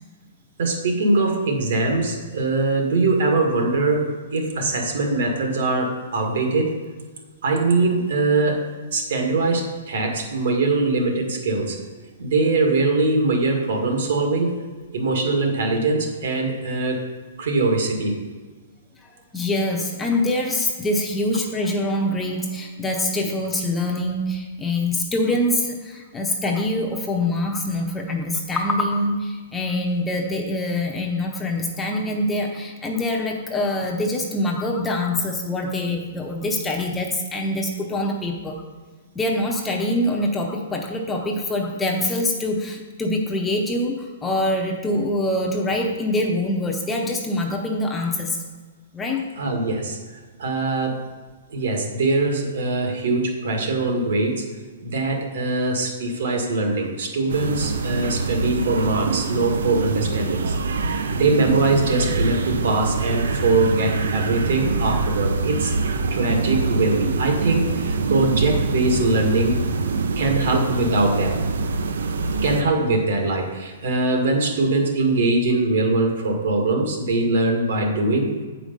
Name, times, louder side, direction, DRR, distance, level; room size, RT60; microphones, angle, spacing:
voice 1, 0.6-6.7 7.4-8.6 8.9-11.8 12.2-14.6 14.9-17.0 17.4-18.2 49.4-50.0 50.4-51.0 51.5-54.5 54.8-60.5 60.8-65.7 66.1-69.6 70.2-71.4 72.4-78.3, right 2 dB, 65° right, 1 dB, 1.8 m, -22 dB
voice 2, 19.3-38.6 39.1-48.4 48.9-49.2, left 1 dB, 10° left, 0 dB, 0.6 m, -24 dB
sound 1, 57.3-72.6, right 3 dB, 90° right, 0.6 m, -25 dB
8.0 x 5.0 x 5.2 m, 1.4 s
hypercardioid pair, 170°, 0 cm